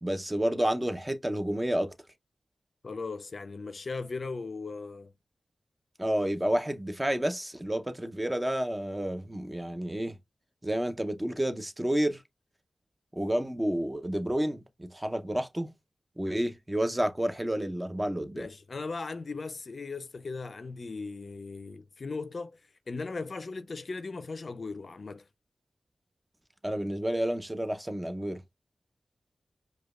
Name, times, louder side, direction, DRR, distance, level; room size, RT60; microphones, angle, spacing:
voice 1, 0.0-1.9 6.0-10.2 10.6-12.2 13.1-15.7 16.2-18.5 26.6-28.4, right 1 dB, 15° right, 0.6 m, -30 dB
voice 2, 2.8-5.1 18.3-22.6 22.9-25.3, left 4 dB, 60° left, 0.4 m, -38 dB
4.9 x 2.2 x 2.3 m
cardioid pair, 60°, 0 cm